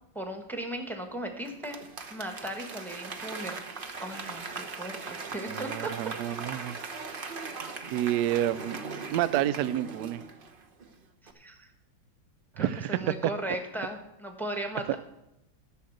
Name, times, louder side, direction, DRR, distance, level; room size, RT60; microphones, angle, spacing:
voice 1, 0.1-1.8 2.1-3.6 4.0-5.9 11.3-11.7 12.6-15.0, right 1 dB, ahead, 4 dB, 1.0 m, -37 dB
Applause / Crowd, 1.4-10.9 11.3-11.4, right 4 dB, 40° right, 0.7 m, -40 dB
voice 2, 5.5-6.8 7.9-8.8 9.1-10.2 12.6-13.1, right 12 dB, 70° right, 16 dB, 1.0 m, -29 dB
11.5 x 6.4 x 8.0 m, 0.88 s
omnidirectional pair, 2.1 m